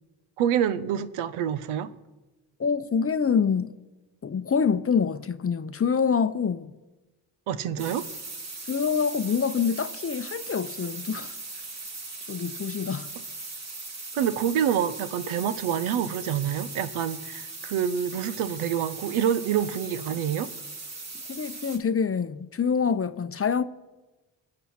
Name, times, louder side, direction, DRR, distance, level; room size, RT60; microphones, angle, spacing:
voice 1, 0.4-1.9 7.5-8.1 14.1-20.5, right 9 dB, 80° right, 0.8 m, -27 dB
voice 2, 2.6-3.8 4.2-6.7 8.7-11.3 12.3-13.1 21.3-23.6, left 6 dB, 30° left, 0.6 m, -26 dB
sound 1, 7.8-21.8, right 3 dB, 30° right, 1.7 m, -39 dB
21.0 x 7.7 x 4.3 m
supercardioid pair, 50°, 49 cm